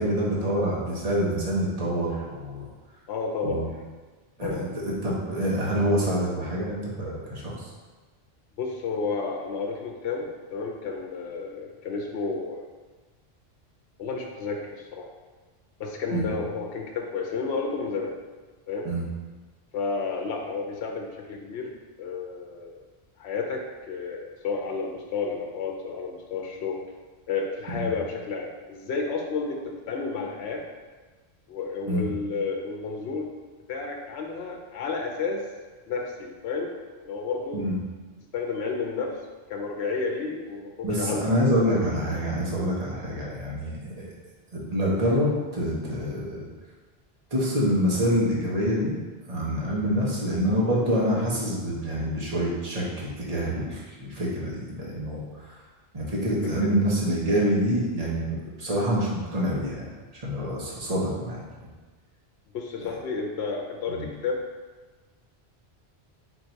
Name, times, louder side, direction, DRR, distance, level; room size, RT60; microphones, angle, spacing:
voice 1, 0.0-2.6 3.4-3.7 4.4-7.5 16.1-16.2 18.8-19.0 27.7-27.9 31.9-32.0 37.5-37.8 40.8-44.1 44.5-46.5 47.3-48.9 49.3-55.5 55.9-59.9 60.2-61.7 63.9-64.0, equal, 40° right, -5 dB, 1.1 m, -26 dB
voice 2, 3.1-3.7 4.4-4.7 8.6-12.6 14.0-15.1 15.8-18.1 18.7-18.9 19.7-21.7 22.0-22.8 23.2-26.8 27.3-30.6 31.5-33.3 33.7-35.4 35.9-37.7 38.3-39.2 39.5-41.2 56.6-56.7 62.5-64.4, left 4 dB, 80° left, 1 dB, 0.9 m, -31 dB
4.4 x 2.7 x 4.5 m, 1.3 s
omnidirectional pair, 1.1 m